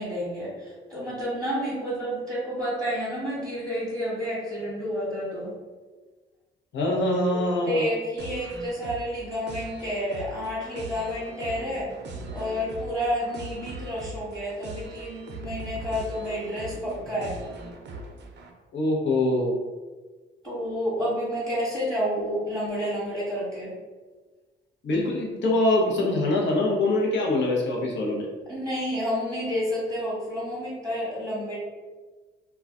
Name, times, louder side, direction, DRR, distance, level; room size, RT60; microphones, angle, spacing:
voice 1, 0.0-5.5 7.3-7.4 7.6-11.9 12.3-17.4 20.4-23.7 28.5-31.6, equal, 5° left, -7 dB, 1.2 m, -30 dB
voice 2, 6.7-7.9 18.7-19.5 24.8-28.3, left 2 dB, 65° left, -1 dB, 0.8 m, -24 dB
sound 1, 8.2-18.5, right 2 dB, 60° right, 0.5 m, -40 dB
2.3 x 2.2 x 3.6 m, 1.3 s
cardioid pair, 90°, 20 cm